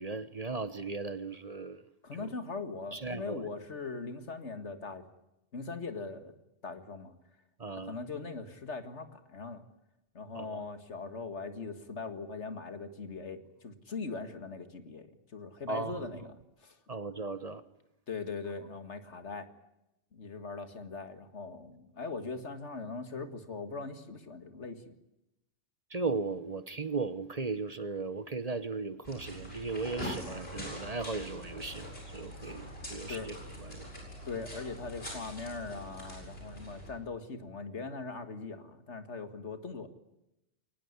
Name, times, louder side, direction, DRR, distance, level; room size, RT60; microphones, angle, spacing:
voice 1, 0.0-1.8 2.9-3.4 7.6-7.9 10.3-10.6 15.7-16.0 16.9-17.6 25.9-33.3 33.7-33.9, right 3 dB, 35° right, 13 dB, 1.1 m, -36 dB
voice 2, 2.0-5.1 5.5-6.3 6.6-7.2 7.7-9.6 10.1-16.8 18.1-19.5 20.1-24.9 32.5-32.6 33.1-33.3 34.3-39.9, left 4 dB, 80° left, 9 dB, 2.3 m, -40 dB
sound 1, 29.0-36.9, equal, 60° left, 8.1 m, -43 dB
22.5 x 19.5 x 9.7 m, 0.90 s
omnidirectional pair, 1.2 m